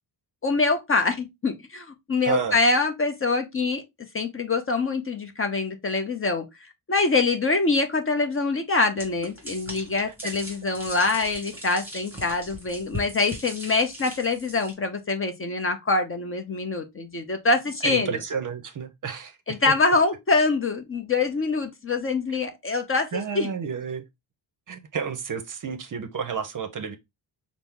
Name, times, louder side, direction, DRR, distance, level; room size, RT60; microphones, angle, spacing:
voice 1, 0.4-3.8 4.1-18.2 19.5-23.5, left 3 dB, 30° left, 0.6 m, -25 dB
voice 2, 2.2-2.6 10.2-10.3 17.8-19.4 23.1-24.0 24.7-27.0, right 6 dB, 45° right, 0.6 m, -31 dB
sound 1, 9.0-14.7, equal, 5° right, 1.9 m, -39 dB
5.7 x 2.0 x 3.5 m
wide cardioid pair, 150°, 46 cm